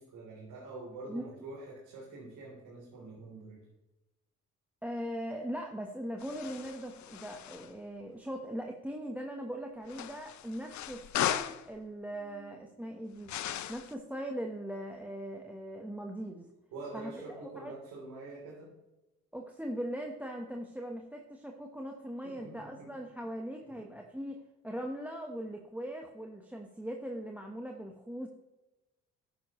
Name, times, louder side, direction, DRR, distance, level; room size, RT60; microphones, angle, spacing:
voice 1, 0.0-3.7 12.1-12.6 16.7-18.7 22.2-22.9 23.7-23.9, right 2 dB, 90° right, -5 dB, 3.7 m, -46 dB
voice 2, 4.8-13.3 13.7-16.5 16.9-17.7 19.3-24.4 24.6-28.3, equal, 5° right, 2 dB, 1.2 m, -40 dB
sound 1, 6.2-7.7 9.9-11.7 13.3-13.9, left 11 dB, 70° left, 0.7 m, -37 dB
13.0 x 10.5 x 3.2 m, 1.0 s
cardioid pair, 90°, 30 cm